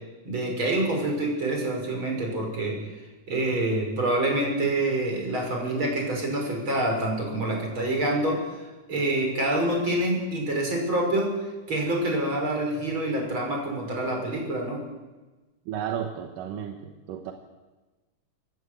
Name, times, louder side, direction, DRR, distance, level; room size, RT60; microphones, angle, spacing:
voice 1, 0.2-2.8 3.3-11.4 11.7-14.8, right 1 dB, 35° right, 0 dB, 6.1 m, -26 dB
voice 2, 15.7-17.3, right 9 dB, 85° right, 4 dB, 2.8 m, -33 dB
26.5 x 14.0 x 8.2 m, 1.2 s
omnidirectional pair, 3.7 m